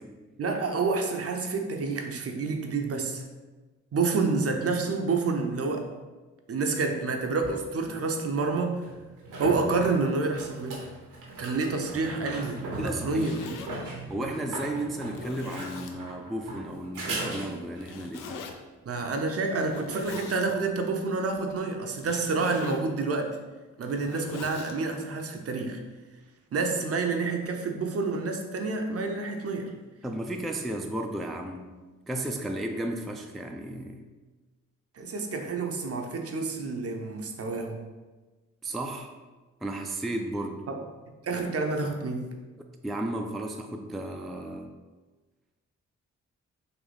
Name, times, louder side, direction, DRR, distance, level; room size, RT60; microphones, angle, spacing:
voice 1, 0.4-3.2 3.9-5.9 6.5-8.8 9.4-10.8 11.4-13.5 13.8-13.9 18.9-23.4 23.8-25.8 26.5-29.7 35.0-37.8 40.7-40.8 41.2-42.3, right 3 dB, 45° right, 4 dB, 0.6 m, -28 dB
sound 1, 7.4-7.5 8.8-17.9 21.4-21.5, right 2 dB, 70° right, 0.8 m, -38 dB
Zipper (clothing), 12.8-13.7 14.4-14.5 15.1-16.0 17.8-18.5 19.6-20.5 21.9-22.9 23.7-24.8, left 5 dB, 75° left, 0.5 m, -42 dB
voice 2, 12.8-13.3 14.1-18.5 30.0-31.7 32.1-34.0 38.6-39.1 39.6-40.6 42.8-44.7, right 1 dB, ahead, 3 dB, 0.3 m, -34 dB
3.8 x 2.5 x 3.3 m, 1.2 s
supercardioid pair, 45°, 32 cm